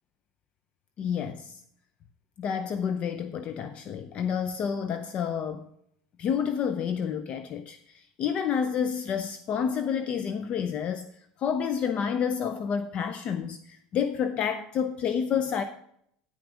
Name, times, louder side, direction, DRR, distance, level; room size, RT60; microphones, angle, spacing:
voice 1, 1.0-1.6 2.4-5.7 6.2-11.1 11.4-15.6, left 7 dB, 45° left, 10 dB, 0.5 m, -29 dB
9.5 x 6.1 x 4.8 m, 0.70 s
supercardioid pair, 110°, 3 cm